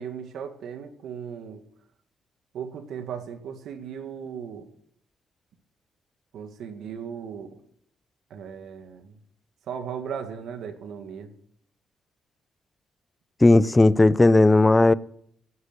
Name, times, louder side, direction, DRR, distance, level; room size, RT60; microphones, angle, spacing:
voice 1, 0.0-1.6 2.5-4.7 6.3-7.6 8.3-9.2 9.7-11.3, right 7 dB, 75° right, 2.0 m, -37 dB
voice 2, 13.4-14.9, left 2 dB, 15° left, 0.5 m, -16 dB
17.0 x 8.2 x 6.7 m
cardioid pair, 90°, 0 cm